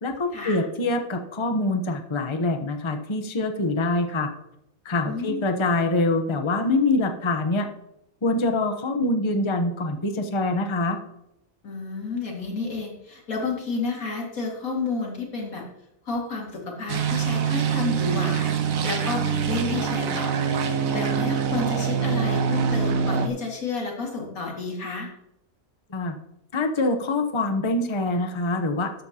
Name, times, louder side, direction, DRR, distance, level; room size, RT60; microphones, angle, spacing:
voice 1, 0.0-4.3 4.8-7.7 8.2-11.0 25.9-26.2 26.5-29.0, left 2 dB, 25° left, 5 dB, 0.9 m, -25 dB
voice 2, 5.1-5.4 11.6-15.6 16.0-18.5 18.8-20.4 20.7-25.1, left 3 dB, 75° left, 0 dB, 2.7 m, -31 dB
sound 1, 16.9-23.3, right 7 dB, 75° right, 1.3 m, -24 dB
13.0 x 9.5 x 2.9 m, 0.84 s
omnidirectional pair, 1.5 m